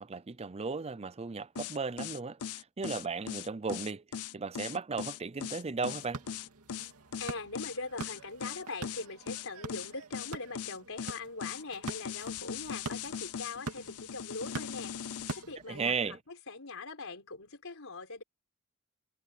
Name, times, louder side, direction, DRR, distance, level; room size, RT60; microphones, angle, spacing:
voice 1, 0.0-4.0 4.3-6.2 15.7-16.2, right 4 dB, 30° right, 0.5 m, -35 dB
sound 1, 1.6-15.4, left 8 dB, 90° left, 0.7 m, -40 dB
sound 2, 5.9-16.0, right 3 dB, 80° right, 2.4 m, -45 dB
voice 2, 7.2-14.9 15.3-18.2, left 3 dB, 65° left, 5.0 m, -42 dB
head